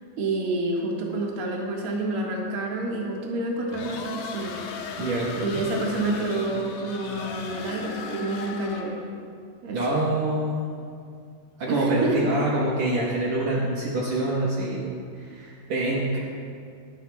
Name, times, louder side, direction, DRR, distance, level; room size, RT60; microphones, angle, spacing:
voice 1, 0.2-4.5 5.4-9.0 9.6-9.8 11.7-12.2, right 2 dB, 55° right, -2 dB, 1.6 m, -28 dB
sound 1, 3.7-9.1, left 5 dB, 75° left, 2.6 m, -36 dB
voice 2, 5.0-5.6 9.7-10.7 11.6-16.2, right 1 dB, 75° right, -5 dB, 1.6 m, -26 dB
21.0 x 10.0 x 2.3 m, 2.3 s
omnidirectional pair, 4.7 m